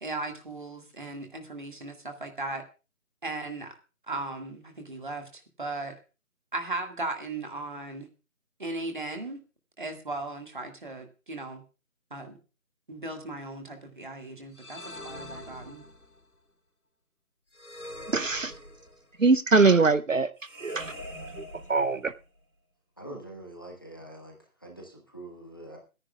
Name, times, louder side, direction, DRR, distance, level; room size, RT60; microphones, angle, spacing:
voice 1, 0.0-2.6 3.2-3.7 4.1-6.0 6.5-8.1 8.6-9.4 9.8-11.6 12.1-12.4 12.9-15.8, right 2 dB, 35° right, 1.9 m, -37 dB
sound 1, 14.5-16.2 17.5-19.2 20.4-22.3, left 1 dB, 80° left, 3.2 m, -43 dB
voice 2, 18.1-18.5 19.2-20.3 20.6-20.9 21.4-21.5 21.7-22.1, right 4 dB, 65° right, 0.7 m, -22 dB
voice 3, 23.0-24.3 24.6-25.8, right 1 dB, 15° left, 1.2 m, -44 dB
25.5 x 10.0 x 2.3 m
figure-of-eight pair, 165°, 43 cm